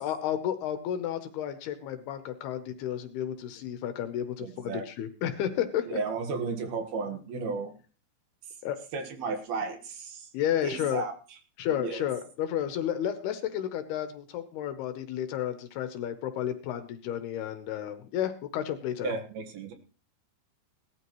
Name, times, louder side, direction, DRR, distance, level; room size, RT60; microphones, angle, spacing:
voice 1, 0.0-5.9 8.6-8.8 10.3-11.0 11.6-19.1, left 10 dB, 75° left, 9 dB, 2.7 m, -32 dB
voice 2, 4.4-4.9 5.9-7.8 8.9-10.3 10.6-11.1 11.7-12.0 19.0-19.7, right 4 dB, 65° right, 6 dB, 3.1 m, -34 dB
18.5 x 12.5 x 3.1 m, 0.37 s
omnidirectional pair, 5.0 m